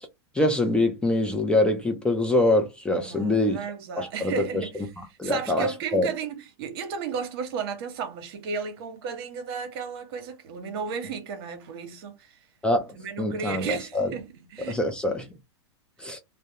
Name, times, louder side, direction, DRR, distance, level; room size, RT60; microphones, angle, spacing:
voice 1, 0.3-3.6 4.0-4.7 5.0-6.1 12.6-12.9 13.2-14.1 14.7-15.3 16.0-16.2, left 1 dB, 5° left, 0.4 m, -24 dB
voice 2, 3.1-4.7 5.2-12.4 12.9-14.8, right 6 dB, 60° right, 0.9 m, -34 dB
2.2 x 2.0 x 2.8 m
hypercardioid pair, 130°, 14 cm